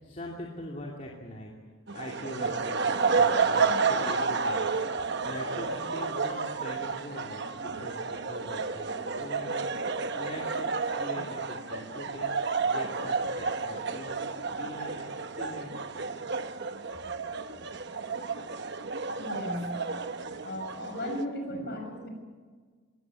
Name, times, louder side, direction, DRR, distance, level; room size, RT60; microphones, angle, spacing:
voice 1, 0.0-4.8 5.2-8.9 9.2-14.2 14.5-15.8, left 1 dB, 35° left, -2 dB, 2.6 m, -43 dB
sound 1, 1.9-21.2, right 4 dB, 50° right, 1.0 m, -31 dB
voice 2, 19.2-19.9 20.4-22.1, left 1 dB, 50° left, 3 dB, 6.4 m, -36 dB
21.5 x 18.0 x 9.8 m, 1.5 s
head